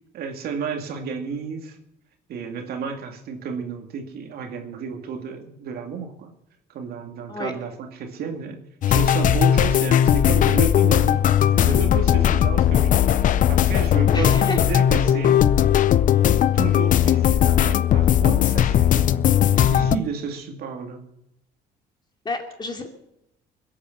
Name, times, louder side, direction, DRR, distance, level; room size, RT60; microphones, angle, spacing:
voice 1, 0.1-1.8 2.3-6.3 6.7-8.6 8.9-11.2 11.5-15.4 16.0-19.1 19.5-21.0, right 5 dB, 65° right, 4 dB, 2.4 m, -32 dB
sound 1, 8.8-20.0, left 10 dB, 50° left, 0.6 m, -18 dB
voice 2, 14.1-14.6 22.2-22.9, left 3 dB, 25° left, 4 dB, 2.7 m, -29 dB
21.5 x 8.4 x 7.2 m, 0.82 s
cardioid pair, 110°, 17 cm